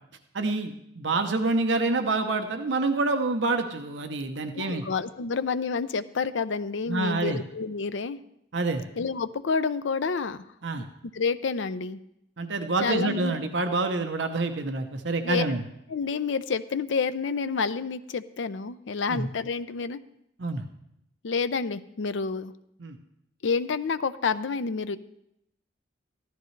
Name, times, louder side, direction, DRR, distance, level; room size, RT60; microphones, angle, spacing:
voice 1, 0.3-4.8 6.9-7.4 8.5-8.8 10.6-10.8 12.4-15.6 19.1-19.3 20.4-20.6 22.8-23.0, right 3 dB, 70° right, 6 dB, 0.8 m, -27 dB
voice 2, 4.5-8.2 9.0-10.4 10.8-10.9 11.1-12.0 12.8-13.3 15.2-15.4 15.9-20.0 21.2-22.5 23.4-25.0, left 5 dB, 75° left, 12 dB, 0.5 m, -29 dB
14.5 x 12.0 x 3.2 m, 0.77 s
head